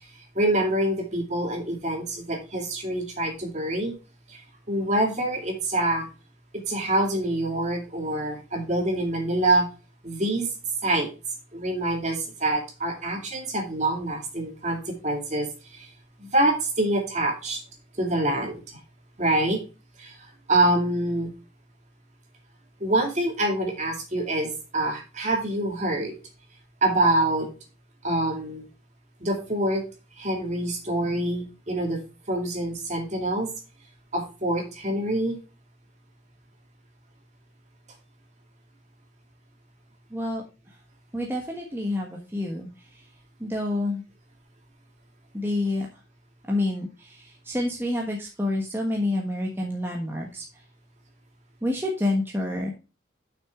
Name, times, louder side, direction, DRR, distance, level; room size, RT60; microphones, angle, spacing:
voice 1, 0.3-3.9 4.3-4.4 4.7-6.1 6.7-9.6 10.0-10.5 10.8-11.1 11.5-15.5 15.7-15.9 16.2-17.6 18.0-18.6 19.2-19.6 20.0-20.1 20.5-21.3 22.8-26.2 26.8-27.5 28.0-28.7 29.2-29.8 30.2-32.0 32.3-33.5 34.1-35.4, right 1 dB, 35° right, 1 dB, 2.3 m, -25 dB
voice 2, 40.1-40.4 41.1-42.7 43.4-44.0 45.3-45.9 46.5-50.4 51.6-52.7, left 1 dB, 10° right, -1 dB, 1.2 m, -28 dB
8.0 x 6.2 x 3.6 m, 0.32 s
head